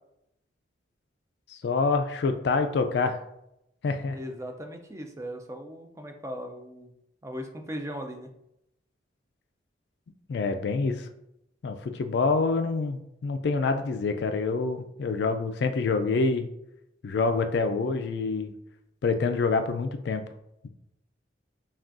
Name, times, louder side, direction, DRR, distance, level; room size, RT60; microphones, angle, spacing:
voice 1, 1.5-3.2 3.8-4.2 10.3-11.1 11.6-16.5 17.0-18.5 19.0-20.2 20.6-20.7, left 4 dB, 60° left, 7 dB, 0.3 m, -26 dB
voice 2, 4.1-6.9 7.2-8.3, equal, 15° right, 4 dB, 0.4 m, -38 dB
5.9 x 2.3 x 2.5 m, 0.81 s
head